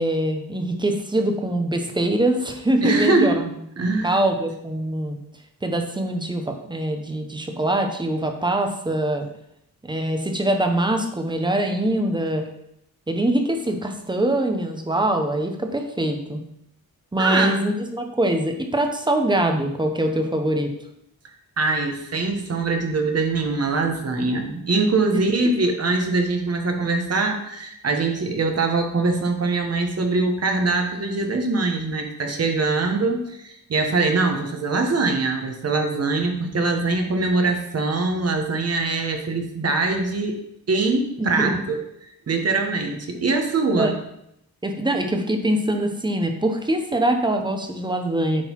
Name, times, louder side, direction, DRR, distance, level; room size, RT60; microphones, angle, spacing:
voice 1, 0.0-3.5 3.8-5.2 5.6-9.3 9.8-12.4 13.1-16.4 17.1-20.7 41.2-41.6 43.8-43.9 44.6-48.4, right 1 dB, 15° right, 4 dB, 0.9 m, -23 dB
voice 2, 2.8-3.4 3.8-4.2 17.2-17.6 21.6-40.4 40.7-41.8 42.3-43.9, right 3 dB, 45° right, 4 dB, 1.2 m, -23 dB
9.5 x 3.9 x 4.6 m, 0.76 s
wide cardioid pair, 140°, 36 cm